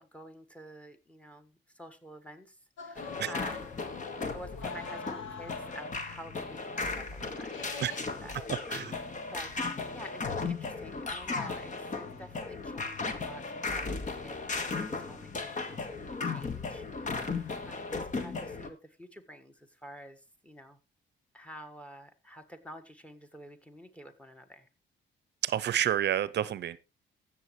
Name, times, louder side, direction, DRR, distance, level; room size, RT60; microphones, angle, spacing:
voice 1, 0.0-3.9 4.2-8.4 8.6-9.5 9.9-20.8 21.3-24.7, equal, 5° left, 1.6 m, -49 dB
sound 1, 2.8-6.0 6.3-6.4 6.6-8.0, left 6 dB, 80° left, 1.6 m, -45 dB
sound 2, 3.0-18.7, left 4 dB, 40° left, 1.6 m, -36 dB
voice 2, 25.4-26.8, right 10 dB, 60° right, 0.7 m, -29 dB
16.0 x 7.3 x 3.2 m
cardioid pair, 90°, 20 cm